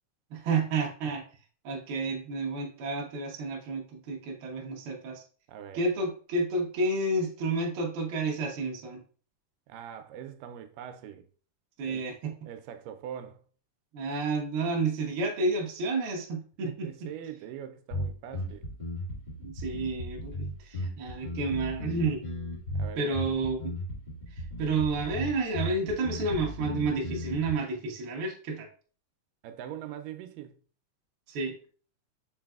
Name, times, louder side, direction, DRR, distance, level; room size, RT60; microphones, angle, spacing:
voice 1, 0.3-1.2 1.6-5.2 5.7-9.0 11.8-12.3 13.9-16.9 19.4-22.2 23.0-23.7 24.6-28.7 31.3-31.5, right 3 dB, 65° right, 1.3 m, -30 dB
voice 2, 5.5-5.8 9.7-11.3 11.9-12.0 12.4-13.4 16.6-18.7 22.7-23.3 29.4-30.6, right 9 dB, 85° right, 2.2 m, -42 dB
sound 1, 17.9-27.5, left 1 dB, 20° left, 1.2 m, -36 dB
5.7 x 4.0 x 2.3 m
omnidirectional pair, 3.7 m